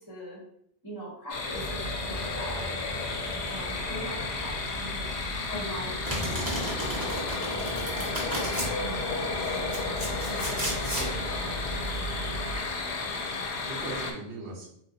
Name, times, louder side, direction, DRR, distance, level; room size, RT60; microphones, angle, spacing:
voice 1, 0.1-0.4 0.8-2.6 3.5-5.1 5.5-9.3 10.3-11.0 11.4-11.8, equal, 20° left, -3 dB, 0.7 m, -42 dB
sound 1, 1.3-14.1, left 3 dB, 80° left, 0.9 m, -33 dB
sound 2, 1.5-12.6, right 2 dB, 55° right, 0.4 m, -39 dB
voice 2, 2.5-2.9 10.9-11.2 11.9-12.4 12.9-14.7, right 2 dB, 70° right, -3 dB, 1.2 m, -42 dB
Domestic sounds home sounds, 6.0-8.7 9.4-11.1, equal, 20° right, 0.8 m, -33 dB
3.1 x 2.7 x 2.6 m, 0.72 s
omnidirectional pair, 1.1 m